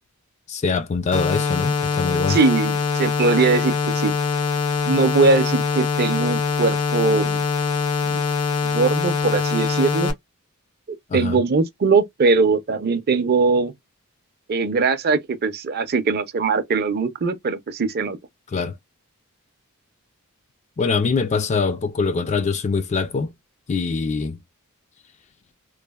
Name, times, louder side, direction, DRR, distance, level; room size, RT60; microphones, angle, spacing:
voice 1, 0.5-2.4 11.1-11.4 18.5-18.8 20.8-23.3 23.7-24.4, left 4 dB, 30° left, 0.3 m, -23 dB
sound 1, 1.1-10.1, left 5 dB, 85° left, 0.7 m, -23 dB
voice 2, 2.3-4.1 4.9-7.4 8.0-8.2 8.6-10.1 11.1-13.7 14.5-18.2, right 4 dB, 45° right, 0.5 m, -21 dB
3.1 x 2.0 x 2.2 m
head